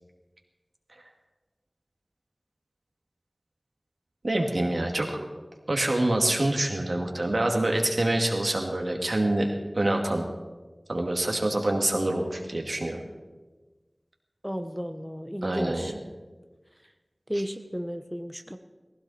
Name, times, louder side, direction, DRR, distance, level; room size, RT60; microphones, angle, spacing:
voice 1, 4.2-5.2 5.7-10.3 10.9-13.0 15.4-15.9, right 1 dB, 70° right, 1 dB, 2.2 m, -26 dB
voice 2, 14.4-15.9 17.3-18.6, equal, ahead, 7 dB, 0.9 m, -33 dB
19.0 x 16.0 x 4.3 m, 1.2 s
wide cardioid pair, 50°, 0 cm